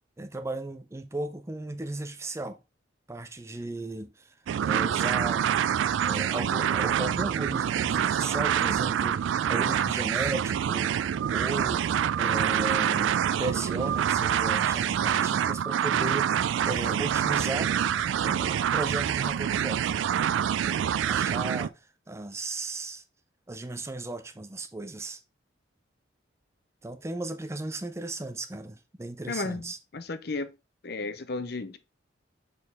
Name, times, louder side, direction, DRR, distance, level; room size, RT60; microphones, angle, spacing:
voice 1, 0.2-2.6 3.1-4.3 4.6-5.6 6.0-11.0 11.3-17.7 18.2-19.9 20.6-23.0 23.5-25.2 26.8-29.8, right 2 dB, 15° right, 0.5 m, -36 dB
sound 1, 4.5-21.7, right 9 dB, 80° right, 0.3 m, -26 dB
voice 2, 29.3-30.5 30.8-31.8, left 3 dB, 55° left, 0.6 m, -34 dB
6.4 x 4.4 x 3.5 m
head